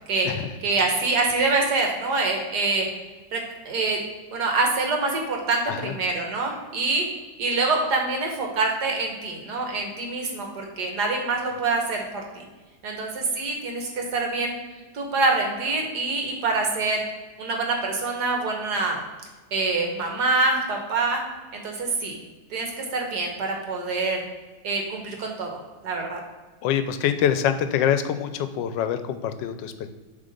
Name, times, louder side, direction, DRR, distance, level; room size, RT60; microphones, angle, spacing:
voice 1, 0.6-2.9 3.3-4.0 4.3-7.1 7.4-12.5 12.8-14.6 14.9-17.0 17.4-19.0 19.5-21.2 21.5-22.2 22.5-24.2 24.6-25.6 25.8-26.2, right 3 dB, 65° right, 1 dB, 1.8 m, -25 dB
voice 2, 26.6-29.9, left 9 dB, 85° left, 10 dB, 1.3 m, -25 dB
7.6 x 3.7 x 5.1 m, 1.3 s
omnidirectional pair, 1.9 m